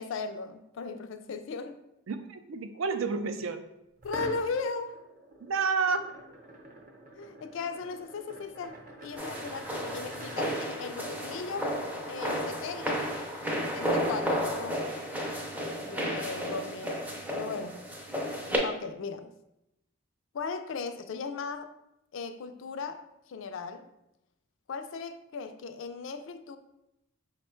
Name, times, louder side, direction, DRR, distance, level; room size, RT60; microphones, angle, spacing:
voice 1, 0.0-1.8 4.0-5.0 7.1-11.7 12.1-13.3 13.7-14.9 15.8-17.8 18.6-19.3 20.3-21.7 22.1-23.9 24.7-26.6, left 4 dB, 65° left, 9 dB, 0.4 m, -37 dB
voice 2, 2.1-3.6 5.4-6.0, right 5 dB, 70° right, 8 dB, 0.4 m, -30 dB
sound 1, 4.0-10.7, right 1 dB, 40° right, 0.7 m, -46 dB
sound 2, 9.2-18.6, equal, 5° right, 0.4 m, -33 dB
4.9 x 2.2 x 4.4 m, 0.87 s
head